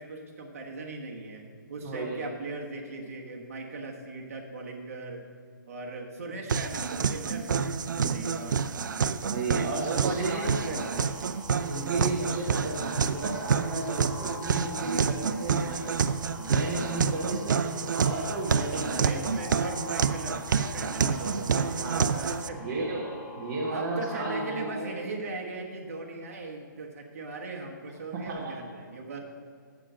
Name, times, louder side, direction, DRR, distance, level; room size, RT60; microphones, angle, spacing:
voice 1, 0.0-5.3 5.7-7.7 7.9-8.5 9.6-11.1 19.0-22.9 23.7-29.2, right 3 dB, 45° right, 0 dB, 1.3 m, -38 dB
voice 2, 1.8-2.3 7.5-8.3 9.2-10.7 11.6-16.1 16.4-17.6 17.9-19.7 20.9-22.2 22.6-25.0 28.1-28.5, right 2 dB, 15° right, -5 dB, 0.7 m, -34 dB
sound 1, 6.5-22.5, right 6 dB, 65° right, 0.4 m, -28 dB
sound 2, 10.1-24.7, left 3 dB, 40° left, 2.3 m, -46 dB
7.7 x 7.4 x 6.2 m, 2.2 s
hypercardioid pair, 180°, 11 cm